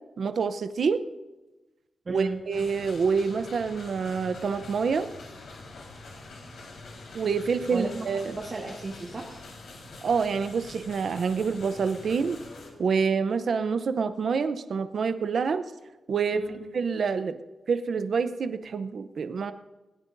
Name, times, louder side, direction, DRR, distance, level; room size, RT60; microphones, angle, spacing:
voice 1, 0.2-1.0 2.1-5.1 7.1-8.3 10.0-12.4 12.8-15.6 16.1-16.4 16.7-17.4 17.7-19.5, right 5 dB, 65° right, 10 dB, 0.6 m, -27 dB
voice 2, 2.0-2.4 7.7-9.4 16.3-16.6, right 3 dB, 40° right, -2 dB, 1.6 m, -34 dB
sound 1, 2.5-12.7, left 3 dB, 85° left, 4.1 m, -45 dB
21.0 x 16.5 x 2.6 m, 1.1 s
wide cardioid pair, 125°, 0 cm